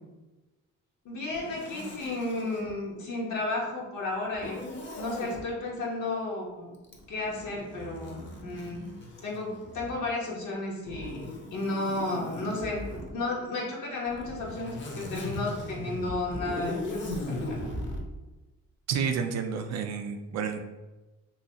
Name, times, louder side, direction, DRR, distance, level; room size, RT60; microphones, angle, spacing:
voice 1, 1.0-4.7 5.0-6.7 7.1-8.8 9.2-17.6, left 2 dB, 75° left, -3 dB, 1.2 m, -33 dB
Zipper (clothing), 1.3-2.7 4.3-5.4 6.8-10.1 10.9-13.1 14.1-18.0, left 1 dB, 40° left, 0.7 m, -38 dB
voice 2, 18.9-20.6, right 6 dB, 60° right, 6 dB, 0.5 m, -30 dB
3.1 x 3.0 x 2.8 m, 1.1 s
cardioid pair, 90°, 30 cm